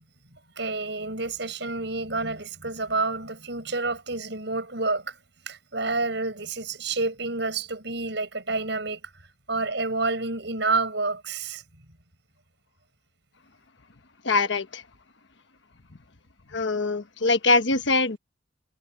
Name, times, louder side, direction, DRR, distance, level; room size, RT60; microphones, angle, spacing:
voice 1, 0.6-5.2 5.5-9.0 9.5-11.6, right 3 dB, 60° right, 7.7 m, -29 dB
voice 2, 14.2-14.8 16.5-18.2, left 3 dB, 65° left, 1.2 m, -23 dB
head